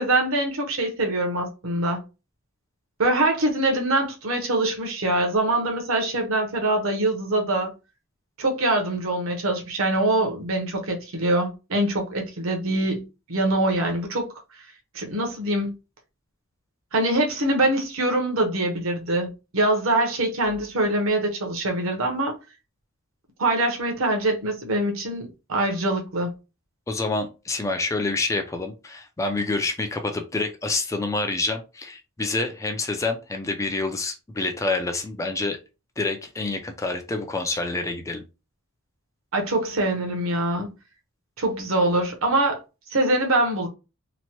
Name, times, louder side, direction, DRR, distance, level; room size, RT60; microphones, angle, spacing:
voice 1, 0.0-2.0 3.0-7.7 8.4-13.0 13.3-14.3 14.9-15.7 16.9-22.3 23.4-26.3 39.3-40.7 41.4-42.6 42.9-43.7, right 1 dB, 75° right, 0.8 m, -24 dB
voice 2, 26.9-35.6 36.0-38.2, left 3 dB, 15° left, 0.3 m, -27 dB
2.9 x 2.1 x 2.9 m
head